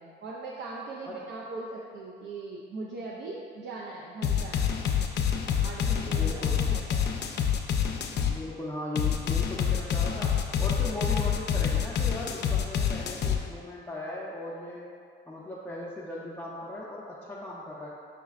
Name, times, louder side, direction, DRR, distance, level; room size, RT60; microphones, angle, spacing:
voice 1, 0.0-4.8 5.6-7.2, right 3 dB, 65° right, -4 dB, 0.5 m, -40 dB
sound 1, 4.2-8.4 9.0-13.4, left 8 dB, 60° left, 0.4 m, -27 dB
voice 2, 6.0-6.7 8.3-14.9 15.3-17.9, left 1 dB, 10° left, -8 dB, 0.5 m, -38 dB
5.7 x 3.1 x 2.4 m, 2.3 s
cardioid pair, 90°, 20 cm